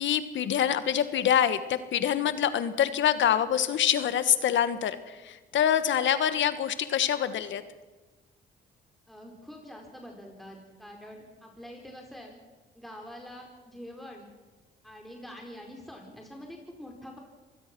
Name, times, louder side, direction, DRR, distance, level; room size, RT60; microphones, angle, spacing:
voice 1, 0.0-7.6, left 9 dB, 70° left, 12 dB, 1.5 m, -25 dB
voice 2, 9.1-12.4 12.7-14.3 14.8-17.2, equal, ahead, 0 dB, 4.7 m, -45 dB
26.0 x 20.0 x 6.2 m, 1.2 s
cardioid pair, 90°, 20 cm